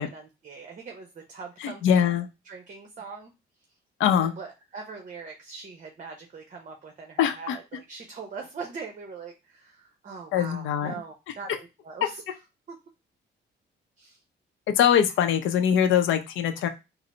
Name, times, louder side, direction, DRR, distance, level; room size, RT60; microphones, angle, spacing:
voice 1, 0.0-2.2 2.4-3.3 4.2-12.2 12.7-12.8 14.0-14.2, right 5 dB, 40° right, 3 dB, 0.8 m, -42 dB
voice 2, 1.6-2.3 4.0-4.3 7.2-7.6 10.3-10.9 14.8-16.7, left 9 dB, 80° left, 7 dB, 0.5 m, -22 dB
3.8 x 2.0 x 4.2 m, 0.26 s
cardioid pair, 90°, 20 cm